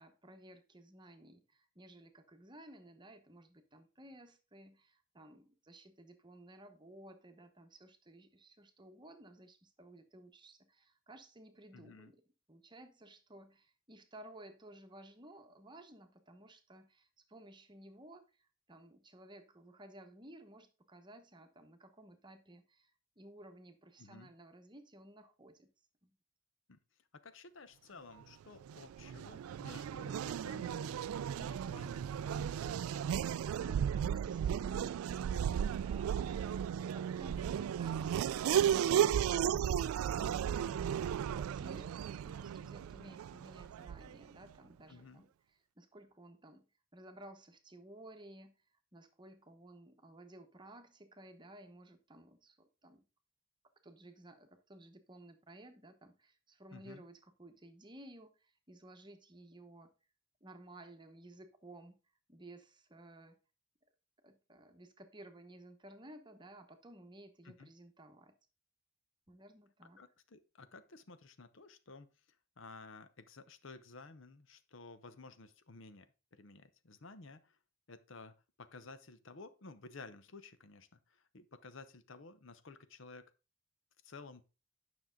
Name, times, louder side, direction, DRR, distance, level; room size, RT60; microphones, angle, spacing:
voice 1, 0.0-12.2 12.5-22.9 23.2-25.7 26.0-26.2 33.6-35.2 35.5-40.6 41.4-45.3 45.8-46.7 46.9-48.6 48.9-53.0 53.8-59.9 60.4-62.0 62.3-63.4 64.2-68.3 69.3-70.0, right 1 dB, 20° right, 7 dB, 0.9 m, -56 dB
voice 2, 11.7-12.1 24.0-24.3 26.7-26.8 27.1-31.0 31.4-32.9 44.9-45.2 56.7-57.0 67.4-67.7 70.0-72.2 72.6-77.6 77.9-83.2 84.0-84.4, left 3 dB, 65° left, 11 dB, 0.8 m, -54 dB
Race car auto racing / Accelerating revving vroom, 28.6-44.2, right 9 dB, 90° right, 0.3 m, -35 dB
9.7 x 6.1 x 3.7 m, 0.32 s
head